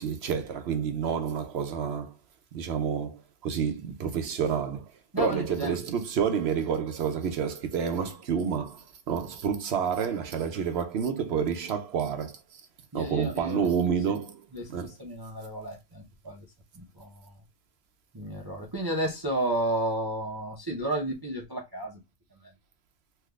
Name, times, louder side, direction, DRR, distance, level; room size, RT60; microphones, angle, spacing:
voice 1, 0.0-2.1 2.5-12.6 12.9-14.4 14.7-14.9, right 7 dB, 60° right, 0.7 m, -29 dB
voice 2, 5.1-5.8 12.9-13.7 14.1-14.2 14.5-16.5 16.7-17.4 18.1-22.0 22.4-22.5, right 1 dB, 30° right, 0.4 m, -32 dB
3.4 x 2.7 x 2.2 m
omnidirectional pair, 1.4 m